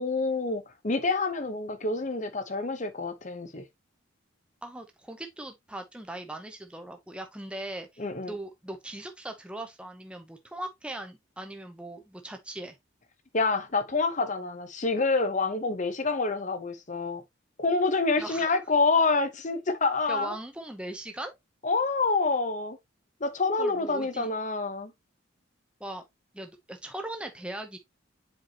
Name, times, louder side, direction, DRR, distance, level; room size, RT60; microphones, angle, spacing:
voice 1, 0.0-3.7 8.0-8.3 13.3-17.2 17.6-20.3 21.6-22.8 23.2-24.9, left 3 dB, 35° left, 0.9 m, -27 dB
voice 2, 4.6-12.8 18.2-18.5 20.1-21.3 23.6-24.3 25.8-26.0 26.3-27.8, right 1 dB, 5° right, 0.7 m, -39 dB
7.6 x 4.7 x 2.8 m
head